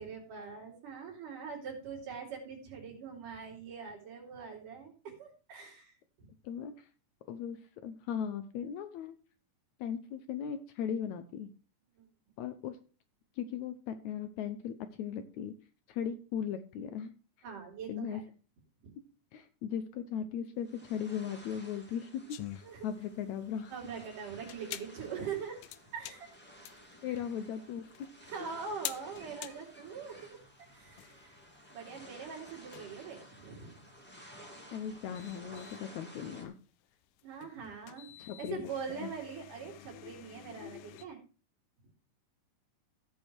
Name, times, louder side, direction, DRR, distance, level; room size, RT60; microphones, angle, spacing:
voice 1, 0.0-6.3 12.0-12.1 17.4-18.2 18.8-18.9 22.6-22.9 23.7-25.6 25.9-26.3 27.1-27.2 28.3-30.4 30.7-31.4 31.7-33.9 37.2-41.2, right 6 dB, 75° right, 0 dB, 4.4 m, -43 dB
voice 2, 6.4-6.9 7.3-7.6 7.8-9.2 9.8-11.5 12.4-12.8 13.4-15.5 15.9-17.1 17.9-18.2 19.3-23.7 27.0-27.9 34.7-36.5 38.2-38.6 38.9-39.1, left 8 dB, 75° left, 10 dB, 1.9 m, -38 dB
sound 1, 20.6-36.5, equal, 5° left, 1.7 m, -54 dB
sound 2, 22.3-41.1, left 15 dB, 90° left, 2.2 m, -49 dB
15.5 x 5.4 x 4.4 m, 0.36 s
omnidirectional pair, 3.7 m